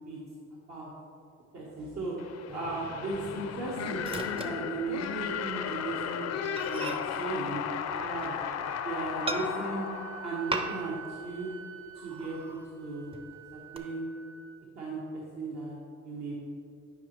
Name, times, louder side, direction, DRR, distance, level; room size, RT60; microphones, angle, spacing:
voice 1, 1.5-2.2 2.5-7.6 8.0-8.5 8.8-9.9 10.2-11.5 11.9-13.1 13.5-14.0 14.7-15.8 16.0-16.4, right 3 dB, 60° right, -5 dB, 1.4 m, -36 dB
sound 1, 2.2-11.0, left 8 dB, 60° left, 0.5 m, -35 dB
Microwave oven, 2.5-5.4 5.7-5.9 6.2-6.3 6.6-8.6 9.3-9.9 10.5-11.1 11.4-11.5 11.9-12.7 13.1-13.8, right 2 dB, 20° right, 0.7 m, -39 dB
Wind instrument woodwind instrument, 7.3-14.7, right 8 dB, 85° right, 1.3 m, -48 dB
11.0 x 5.1 x 3.2 m, 2.6 s
cardioid pair, 90°, 30 cm